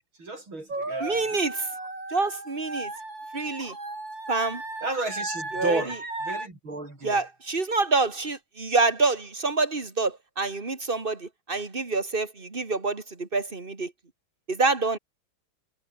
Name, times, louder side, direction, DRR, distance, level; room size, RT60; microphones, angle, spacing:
voice 1, 0.2-1.2 4.8-6.0 6.3-7.2, right 2 dB, 85° right, 8.7 m, -32 dB
sound 1, 0.7-6.5, right 2 dB, 65° right, 8.7 m, -35 dB
voice 2, 1.0-1.7 2.1-2.9 3.3-3.8 4.3-4.6 5.5-6.0 7.0-13.9 14.5-15.0, right 3 dB, 25° right, 2.7 m, -27 dB
omnidirectional pair, 2.2 m